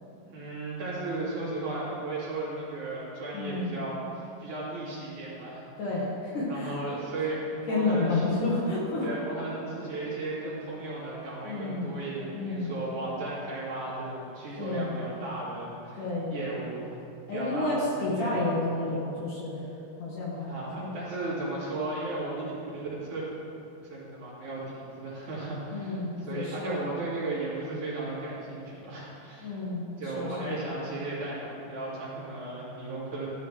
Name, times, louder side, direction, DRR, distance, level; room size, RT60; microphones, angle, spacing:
voice 1, 0.3-5.6 6.5-7.4 7.7-8.3 9.0-17.0 17.3-18.3 20.4-22.4 22.7-22.8 23.1-23.2 23.9-29.5 30.0-33.3, right 2 dB, 50° right, -8 dB, 3.7 m, -35 dB
voice 2, 3.3-3.7 5.8-6.8 7.7-9.1 11.4-11.9 12.3-12.7 14.6-14.9 15.9-16.3 17.3-19.6 20.0-20.4 20.8-20.9 25.7-26.8 29.4-30.6, left 2 dB, 60° left, -5 dB, 2.8 m, -30 dB
14.0 x 11.5 x 3.3 m, 2.8 s
omnidirectional pair, 4.8 m